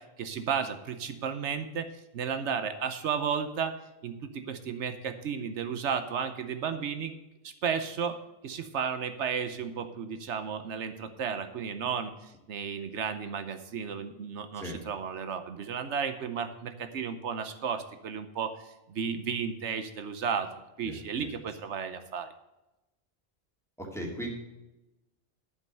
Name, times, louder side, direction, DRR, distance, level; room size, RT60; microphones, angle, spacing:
voice 1, 0.0-1.9 2.1-3.7 4.0-7.1 7.4-8.2 8.4-12.1 12.5-18.5 18.9-20.5 20.8-22.3, right 6 dB, 80° right, 8 dB, 1.1 m, -33 dB
voice 2, 20.8-21.3 23.8-24.3, equal, ahead, -2 dB, 2.4 m, -38 dB
11.0 x 5.4 x 7.6 m, 0.98 s
omnidirectional pair, 1.2 m